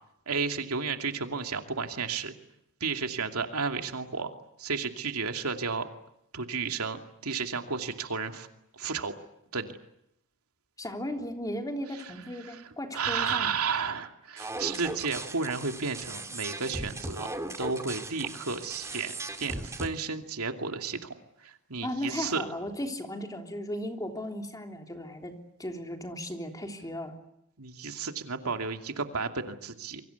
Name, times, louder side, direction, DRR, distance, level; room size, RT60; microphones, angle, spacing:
voice 1, 0.3-2.3 2.8-4.3 4.6-5.9 6.3-8.5 8.7-9.1 9.5-9.7 12.0-12.6 12.9-17.3 17.6-19.1 19.4-21.1 21.4-22.4 27.6-30.0, right 5 dB, 90° right, 5 dB, 2.7 m, -32 dB
voice 2, 10.8-13.5 21.8-27.2, left 1 dB, 15° left, 4 dB, 3.4 m, -36 dB
sound 1, 14.4-19.9, right 2 dB, 15° right, 2.5 m, -38 dB
28.0 x 24.0 x 8.3 m, 0.78 s
head